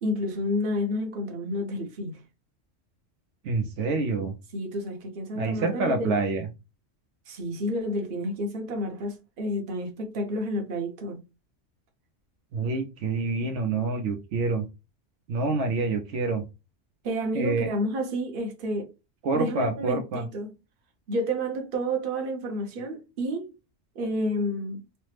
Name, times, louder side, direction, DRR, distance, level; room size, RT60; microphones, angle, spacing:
voice 1, 0.0-2.2 4.5-6.1 7.3-11.2 17.0-18.9 19.3-20.5 21.1-23.5 23.9-24.8, equal, 50° right, 0.9 m, -30 dB
voice 2, 3.4-4.3 5.3-6.5 12.5-14.6 15.3-16.5 17.3-17.7 19.2-20.3, right 3 dB, 75° right, 0.9 m, -27 dB
3.2 x 2.0 x 3.1 m
omnidirectional pair, 1.3 m